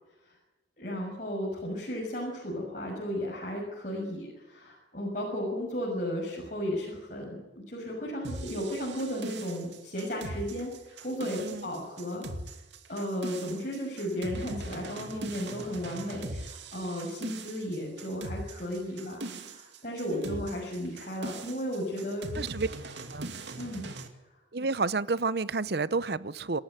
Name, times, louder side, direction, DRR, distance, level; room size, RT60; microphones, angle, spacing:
voice 1, 0.8-12.2 12.9-22.3 23.6-23.9, equal, 45° left, 6.6 m, -34 dB
sound 1, 8.2-24.1, right 2 dB, 75° right, 2.5 m, -40 dB
voice 2, 11.4-11.7 20.1-20.4 22.3-22.7 23.1-23.3 24.5-26.6, right 3 dB, 60° right, 0.8 m, -30 dB
28.0 x 14.0 x 9.3 m
head